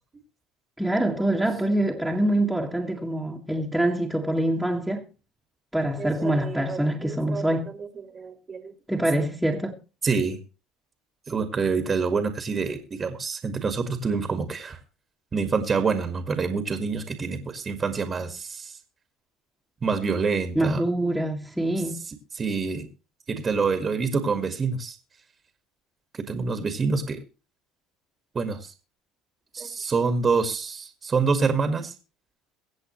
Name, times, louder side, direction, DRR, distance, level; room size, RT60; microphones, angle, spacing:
voice 1, 0.8-5.1 5.7-7.6 8.9-9.7 20.6-22.0, right 1 dB, ahead, 1.9 m, -25 dB
voice 2, 6.0-7.5 7.8-8.7 10.0-10.4 11.3-14.8 15.3-18.8 19.8-20.8 22.4-22.9 23.3-25.0 26.1-27.2 28.3-28.7 29.5-31.9, right 5 dB, 25° right, 1.9 m, -27 dB
23.0 x 7.9 x 3.1 m
cardioid pair, 125°, 0 cm